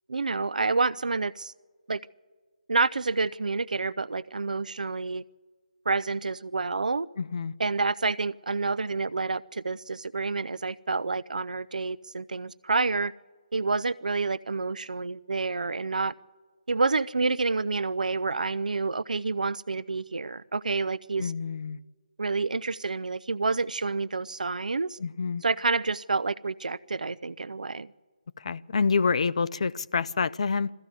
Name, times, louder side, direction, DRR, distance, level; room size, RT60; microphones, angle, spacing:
voice 1, 0.1-1.5 1.9-2.0 2.7-5.2 5.9-7.1 7.6-13.1 13.5-16.1 16.7-21.3 22.2-25.0 25.4-27.9, right 3 dB, 65° right, 0.6 m, -28 dB
voice 2, 7.2-7.5 21.2-21.8 25.0-25.4 28.4-30.7, left 5 dB, 45° left, 0.5 m, -27 dB
22.0 x 14.5 x 8.3 m
figure-of-eight pair, 155°, 4 cm